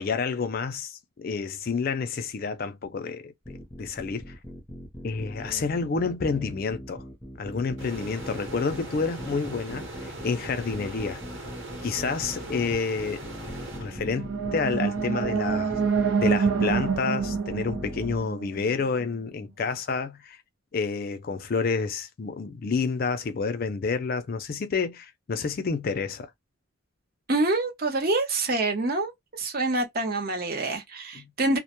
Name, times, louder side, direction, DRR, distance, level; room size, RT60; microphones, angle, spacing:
voice 1, 0.0-4.3 5.0-7.0 7.4-11.2 11.8-13.2 13.8-15.8 16.2-20.4 20.7-26.3 31.1-31.3, left 4 dB, 45° left, 0.4 m, -29 dB
sound 1, 3.4-18.2, equal, 5° left, 0.7 m, -40 dB
sound 2, 7.8-14.4, right 2 dB, 65° right, 1.1 m, -40 dB
sound 3, 13.9-19.0, right 5 dB, 85° right, 0.6 m, -27 dB
voice 2, 27.3-29.1 29.4-31.6, right 2 dB, 45° right, 0.7 m, -26 dB
2.1 x 2.0 x 2.8 m
head